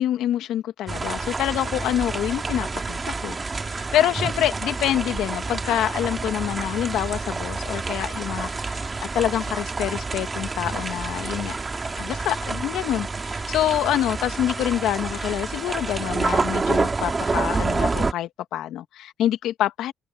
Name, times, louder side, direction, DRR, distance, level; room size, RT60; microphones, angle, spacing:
voice 1, 0.0-19.9, left 12 dB, 85° left, 1.6 m, -26 dB
sound 1, 0.9-18.1, right 3 dB, 30° right, 2.3 m, -28 dB
cardioid pair, 90°, 0 cm